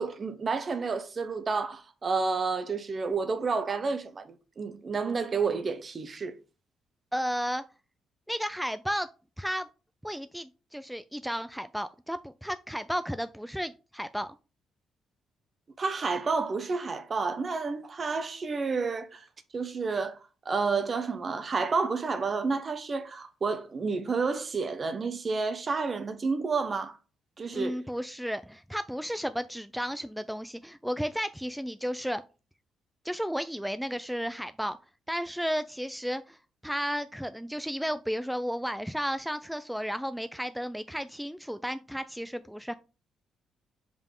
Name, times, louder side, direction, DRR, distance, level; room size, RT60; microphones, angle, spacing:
voice 1, 0.0-6.3 15.8-19.2 19.5-20.2 20.4-27.0 27.4-27.8, right 4 dB, 40° right, 0.9 m, -30 dB
voice 2, 7.1-7.6 8.3-9.1 9.4-9.7 10.0-14.3 27.5-32.2 33.0-34.8 35.1-36.4 36.6-42.7, equal, ahead, 0.3 m, -33 dB
5.2 x 5.2 x 3.7 m
cardioid pair, 90°, 0 cm